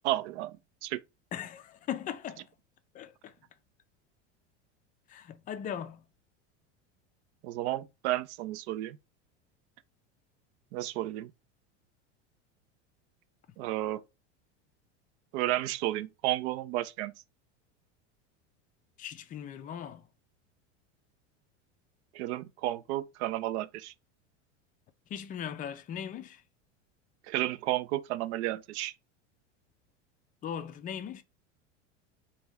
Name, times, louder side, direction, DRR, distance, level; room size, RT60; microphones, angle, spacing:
voice 1, 0.0-0.5 0.8-1.0 7.4-9.0 10.7-11.3 13.6-14.0 15.3-17.1 22.1-23.9 27.3-28.9, right 15 dB, 65° right, 0.5 m, -32 dB
voice 2, 1.3-2.5 2.9-3.3 5.1-6.0 19.0-20.0 25.1-26.4 30.4-31.2, left 9 dB, 25° left, 0.3 m, -39 dB
2.5 x 2.3 x 3.3 m
hypercardioid pair, 105°, 36 cm